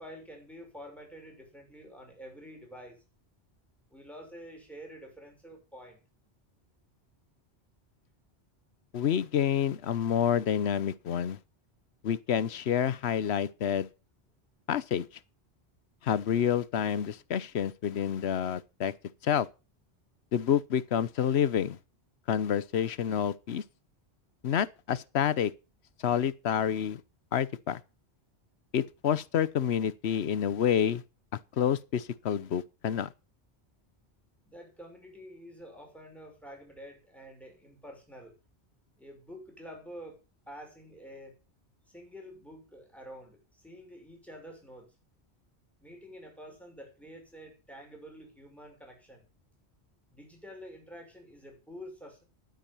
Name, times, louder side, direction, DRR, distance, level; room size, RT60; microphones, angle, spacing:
voice 1, 0.0-3.0 3.9-6.0 34.4-38.3 39.0-40.2 40.5-41.4 41.9-45.0 45.8-49.3 50.1-52.2, equal, ahead, 6.1 m, -48 dB
voice 2, 8.9-11.4 12.0-13.9 14.7-15.1 16.0-18.9 19.2-19.5 20.3-21.8 22.3-23.6 24.4-25.5 26.0-27.0 27.3-27.8 28.7-31.0 31.5-33.1, left 9 dB, 75° left, 1.0 m, -28 dB
12.0 x 9.3 x 5.4 m
omnidirectional pair, 1.1 m